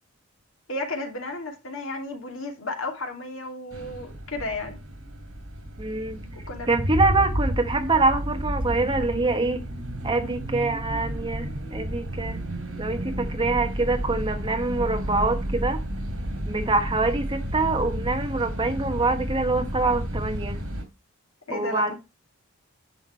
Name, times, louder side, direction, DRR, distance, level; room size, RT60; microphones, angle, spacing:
voice 1, 0.7-4.8 6.5-6.7 10.1-10.4 21.5-22.0, left 2 dB, 70° left, 2.7 m, -33 dB
sound 1, 3.7-20.8, equal, 80° right, 2.8 m, -31 dB
voice 2, 5.8-6.2 6.7-9.6 10.0-12.4 12.8-15.8 16.4-20.6 21.5-21.9, right 3 dB, 25° right, 1.2 m, -25 dB
10.5 x 6.0 x 4.5 m
head